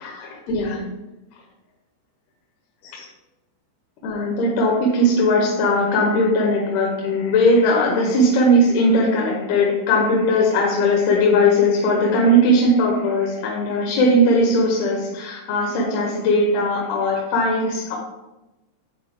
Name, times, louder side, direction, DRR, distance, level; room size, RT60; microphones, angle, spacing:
voice 1, 0.2-0.8 2.9-3.0 4.0-18.0, left 1 dB, 80° left, -1 dB, 2.9 m, -19 dB
10.0 x 4.1 x 3.6 m, 1.0 s
omnidirectional pair, 4.5 m